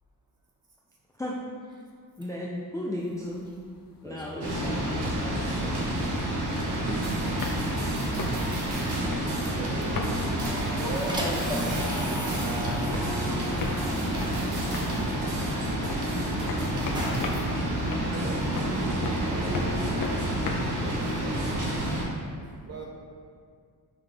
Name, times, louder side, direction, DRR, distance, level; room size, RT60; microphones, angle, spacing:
voice 1, 2.2-3.4 4.0-6.0, left 1 dB, 10° left, -4 dB, 0.4 m, -36 dB
sound 1, 3.0-3.7 4.0-4.1 4.3-11.7 12.0-21.8, left 3 dB, 60° left, 0.8 m, -38 dB
voice 2, 4.0-4.8 9.4-9.5 10.4-15.5 16.7-17.2 18.7-20.5 20.8-21.5, right 1 dB, 10° right, -5 dB, 1.1 m, -36 dB
sound 2, 4.4-22.1, right 1 dB, 90° right, 1.3 m, -29 dB
sound 3, 7.0-17.4, right 2 dB, 70° right, 1.4 m, -41 dB
voice 3, 9.3-10.5 16.4-16.7 18.1-18.4 22.6-22.8, right 4 dB, 40° right, -1 dB, 0.7 m, -40 dB
5.9 x 5.5 x 3.4 m, 2.1 s
wide cardioid pair, 170°, 39 cm